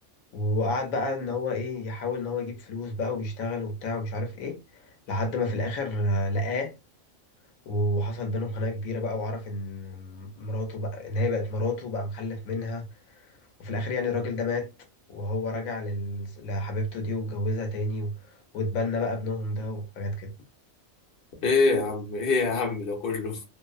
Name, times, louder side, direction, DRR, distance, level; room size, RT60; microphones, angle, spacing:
voice 1, 0.3-6.7 7.7-12.9 13.1-14.7 15.1-20.3, left 2 dB, 90° left, 1.1 m, -30 dB
voice 2, 21.4-23.4, left 4 dB, 50° left, 0.9 m, -25 dB
2.6 x 2.0 x 2.3 m
omnidirectional pair, 1.4 m